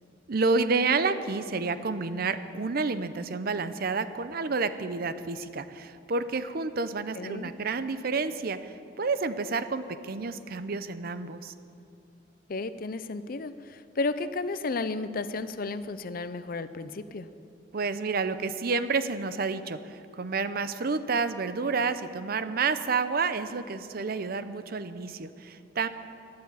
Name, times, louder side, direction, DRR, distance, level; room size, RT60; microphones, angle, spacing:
voice 1, 0.3-11.5 17.7-25.9, right 4 dB, 55° right, 12 dB, 0.6 m, -29 dB
voice 2, 7.2-7.5 12.5-17.3, left 3 dB, 50° left, 13 dB, 0.6 m, -33 dB
12.5 x 10.5 x 8.3 m, 2.7 s
head